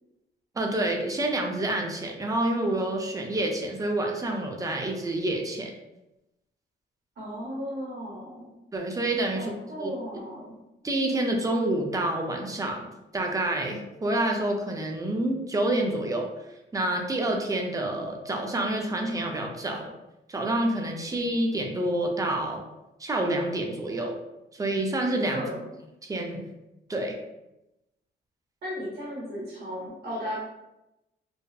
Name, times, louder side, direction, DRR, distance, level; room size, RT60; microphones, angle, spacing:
voice 1, 0.6-5.7 8.7-9.5 9.8-9.9 10.8-12.9 13.1-16.3 16.7-19.9 20.3-22.6 23.0-24.2 24.5-25.4 26.0-26.4 26.9-27.1, right 1 dB, 15° right, 2 dB, 0.4 m, -28 dB
voice 2, 7.2-8.5 9.3-10.5 25.3-25.7 28.6-30.4, equal, 55° right, -5 dB, 0.9 m, -35 dB
2.7 x 2.1 x 2.2 m, 0.94 s
cardioid pair, 90°, 20 cm